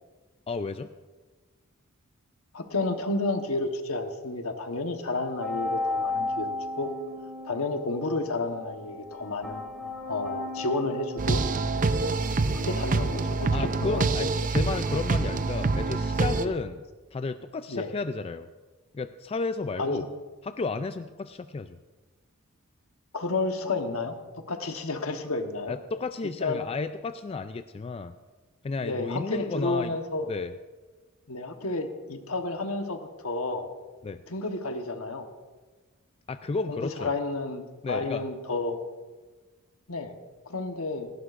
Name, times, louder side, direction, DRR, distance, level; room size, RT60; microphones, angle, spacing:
voice 1, 0.5-0.9 12.0-12.1 13.5-16.8 17.1-18.5 18.9-20.0 20.4-21.8 25.7-28.1 28.6-29.9 30.3-30.5 34.0-34.2 36.3-37.1 37.8-38.2, left 3 dB, 25° left, 10 dB, 0.3 m, -32 dB
voice 2, 2.5-6.9 7.4-9.6 10.1-11.4 12.5-14.0 16.4-16.6 17.7-17.9 19.8-20.1 23.1-24.1 24.5-25.7 26.4-26.6 28.8-30.3 31.3-33.7 34.3-35.3 36.7-38.8 39.9-40.1 40.5-41.1, left 2 dB, 70° left, 5 dB, 1.2 m, -31 dB
sound 1, 5.4-12.3, left 2 dB, ahead, 2.1 m, -35 dB
sound 2, 11.2-16.5, right 3 dB, 40° right, 0.5 m, -26 dB
17.5 x 16.0 x 2.5 m, 1.3 s
head